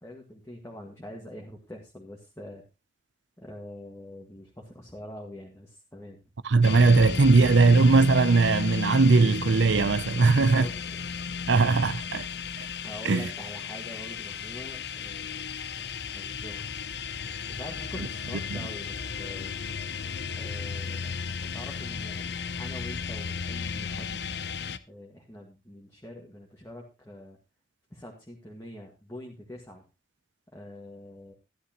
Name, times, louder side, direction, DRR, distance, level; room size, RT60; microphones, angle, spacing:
voice 1, 0.0-2.6 3.4-6.2 10.2-11.0 12.8-16.6 17.5-19.5 20.4-21.1 21.5-22.2 22.6-24.2 24.9-27.4 27.9-29.9 30.5-31.3, left 1 dB, 15° left, 1.8 m, -44 dB
voice 2, 6.4-10.7 11.5-12.3 13.0-13.3 18.5-18.6, right 3 dB, 80° right, 0.6 m, -20 dB
sound 1, 6.6-24.8, left 5 dB, 60° left, 0.6 m, -34 dB
13.5 x 11.0 x 3.0 m
head